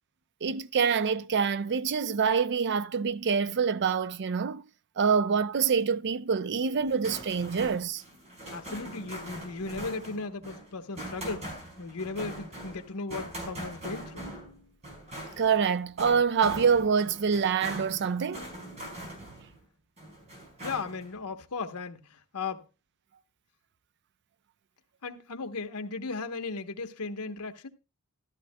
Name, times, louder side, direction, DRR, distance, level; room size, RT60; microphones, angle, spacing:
voice 1, 0.4-4.7 5.0-8.0 15.4-18.4 19.2-19.3, right 6 dB, 50° right, 0.5 m, -26 dB
sound 1, 6.8-19.6 20.0-21.1, right 1 dB, 30° right, 4.7 m, -42 dB
voice 2, 8.5-14.3 20.6-22.6 25.0-27.7, left 4 dB, 85° left, 1.1 m, -36 dB
14.5 x 12.0 x 2.2 m
head